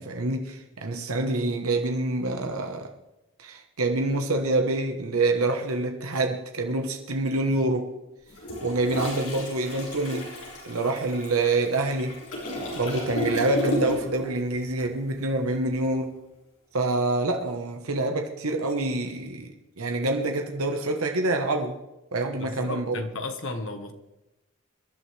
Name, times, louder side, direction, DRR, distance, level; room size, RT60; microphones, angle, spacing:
voice 1, 0.0-2.9 3.4-7.9 8.6-10.3 10.6-12.2 12.7-16.2 16.7-19.5 19.8-21.8 22.1-23.0, right 2 dB, 85° right, 1.2 m, -26 dB
Toilet flush, 8.3-14.2 14.5-14.8, left 1 dB, 80° left, 6.0 m, -33 dB
voice 2, 22.4-23.9, left 2 dB, 60° left, 1.5 m, -33 dB
25.0 x 11.5 x 3.4 m
head